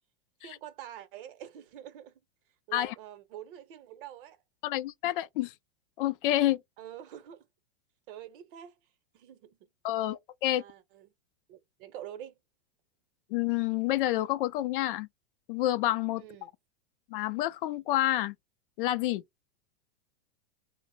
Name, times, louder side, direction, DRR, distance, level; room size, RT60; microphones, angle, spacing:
voice 1, 0.4-2.1 2.7-4.4 6.8-7.5 8.1-8.7 9.1-9.7 10.5-11.1 11.5-12.4 16.2-16.5, right 11 dB, 55° right, 0.8 m, -46 dB
voice 2, 4.6-5.5 6.0-6.6 9.8-10.6 13.3-15.1 15.5-16.2 17.1-18.3 18.8-19.2, left 14 dB, 55° left, 0.4 m, -28 dB
3.0 x 2.0 x 3.4 m
supercardioid pair, 140°, 32 cm